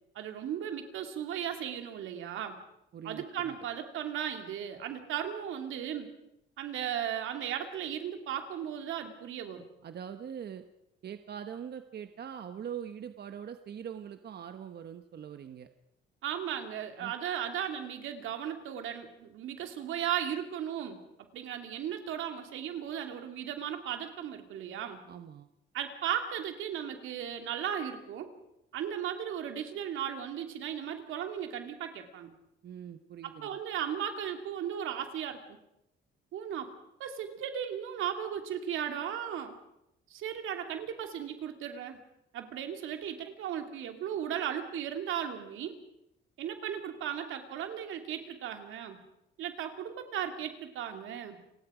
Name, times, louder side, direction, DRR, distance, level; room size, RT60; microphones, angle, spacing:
voice 1, 0.1-2.6 3.0-6.1 6.6-9.6 16.2-21.0 21.3-25.0 25.7-28.3 28.7-32.3 33.2-35.6 36.3-36.7 37.0-39.5 40.1-42.0 42.3-45.8 46.4-49.0 49.4-51.4, right 9 dB, 85° right, 5 dB, 2.8 m, -36 dB
voice 2, 2.9-3.6 9.8-10.6 11.0-15.7 17.0-17.1 25.1-25.5 32.6-33.6, right 8 dB, 55° right, 8 dB, 1.2 m, -42 dB
29.5 x 18.5 x 5.1 m, 0.83 s
cardioid pair, 90°, 20 cm